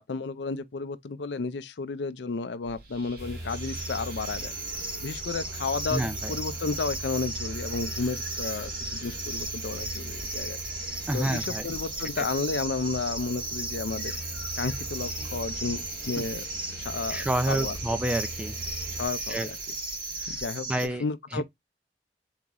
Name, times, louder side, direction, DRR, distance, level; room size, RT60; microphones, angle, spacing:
voice 1, 0.0-4.5 5.0-10.6 11.1-14.1 14.6-16.5 16.8-17.8 18.9-19.6 20.3-20.7 21.0-21.4, left 4 dB, 80° left, 0.5 m, -32 dB
sound 1, 2.6-20.4, right 1 dB, 60° right, 1.7 m, -46 dB
sound 2, 3.2-19.1, equal, 60° left, 1.4 m, -41 dB
sound 3, 3.5-20.9, right 2 dB, 30° right, 1.3 m, -36 dB
voice 2, 5.9-6.4 11.1-11.7 12.2-12.3 16.1-16.2 17.1-18.6 19.3-19.5 20.2-20.4 20.7-21.0 21.3-21.4, right 1 dB, 5° right, 0.4 m, -29 dB
4.0 x 3.0 x 3.7 m
head